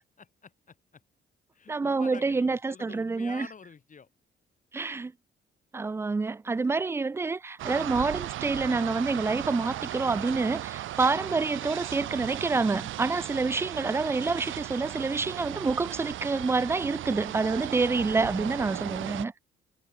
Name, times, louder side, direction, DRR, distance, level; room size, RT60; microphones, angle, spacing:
voice 1, 0.2-1.0 1.5-4.1, left 6 dB, 40° left, 4.8 m, -48 dB
voice 2, 1.7-3.5 4.7-5.1 5.7-19.3, right 3 dB, 15° right, 0.3 m, -27 dB
sound 1, 7.6-19.3, right 14 dB, 80° right, 1.6 m, -36 dB
cardioid pair, 90°, 20 cm